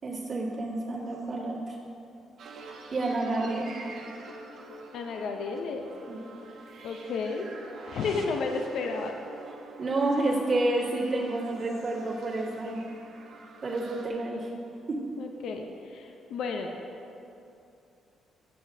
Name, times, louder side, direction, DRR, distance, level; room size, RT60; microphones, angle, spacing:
voice 1, 0.0-1.8 2.9-3.7 6.1-6.2 9.8-12.8 13.6-14.5 14.9-15.0, right 2 dB, 45° right, -6 dB, 1.9 m, -29 dB
sound 1, 2.4-14.1, right 3 dB, 70° right, 0.9 m, -46 dB
voice 2, 4.9-5.8 6.8-7.5 7.9-9.1 15.2-16.7, left 4 dB, 75° left, 3 dB, 0.6 m, -32 dB
11.0 x 7.0 x 2.7 m, 2.7 s
cardioid pair, 90°, 0 cm